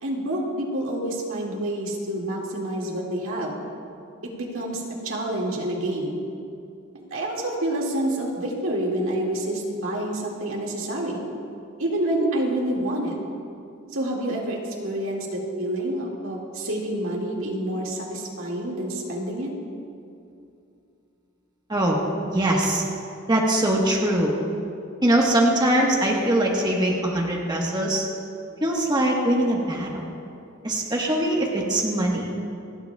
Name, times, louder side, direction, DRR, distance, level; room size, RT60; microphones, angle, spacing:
voice 1, 0.0-3.6 4.4-6.2 6.9-11.2 11.8-13.2 13.9-19.5, right 1 dB, 75° right, -2 dB, 2.1 m, -28 dB
voice 2, 22.3-22.8 23.3-24.3 25.0-28.1 28.6-30.1 30.6-32.3, right 1 dB, 20° right, -2 dB, 1.3 m, -22 dB
28.5 x 9.8 x 2.3 m, 2.5 s
head